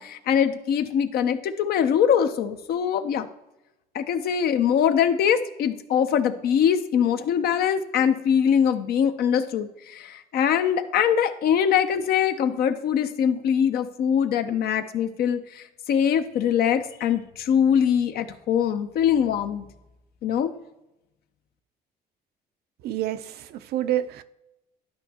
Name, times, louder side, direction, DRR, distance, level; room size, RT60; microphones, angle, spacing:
voice 1, 0.0-3.3 3.9-19.7 20.2-20.5, left 8 dB, 65° left, 9 dB, 0.7 m, -23 dB
voice 2, 22.8-24.2, right 12 dB, 70° right, 12 dB, 0.5 m, -28 dB
12.0 x 5.3 x 2.9 m, 0.92 s
cardioid pair, 110°, 17 cm